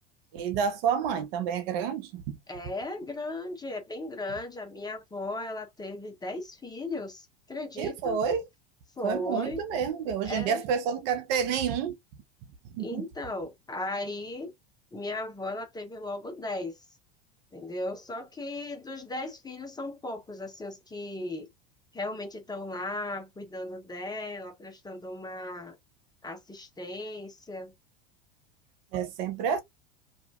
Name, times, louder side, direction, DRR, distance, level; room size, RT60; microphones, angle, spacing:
voice 1, 0.3-2.4 7.8-8.5 9.0-11.9 12.7-13.0 28.9-29.6, right 7 dB, 65° right, 0.9 m, -29 dB
voice 2, 2.5-8.2 9.0-9.6 10.2-10.6 12.8-14.5 14.9-16.8 17.5-21.5 21.9-25.8 26.2-27.7, left 2 dB, 10° left, 0.9 m, -36 dB
2.9 x 2.6 x 2.3 m
hypercardioid pair, 100°, 31 cm